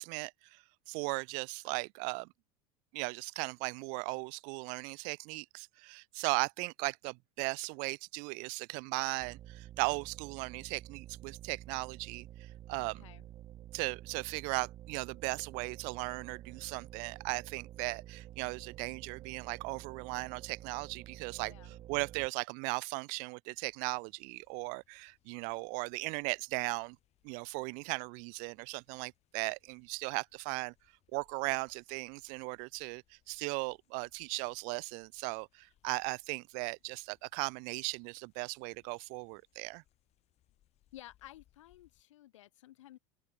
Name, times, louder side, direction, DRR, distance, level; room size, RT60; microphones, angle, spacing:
voice 1, 0.0-2.3 2.9-13.0 13.7-21.5 21.9-27.0 27.2-30.7 31.1-39.8, right 37 dB, 60° right, 0.4 m, -37 dB
sound 1, 9.2-22.3, right 12 dB, 40° right, 2.5 m, -50 dB
voice 2, 12.8-13.3 21.4-21.8 40.9-43.0, left 14 dB, 90° left, 1.6 m, -54 dB
sound 2, 23.5-42.0, left 13 dB, 45° left, 5.4 m, -74 dB
open air
supercardioid pair, 115°, 16 cm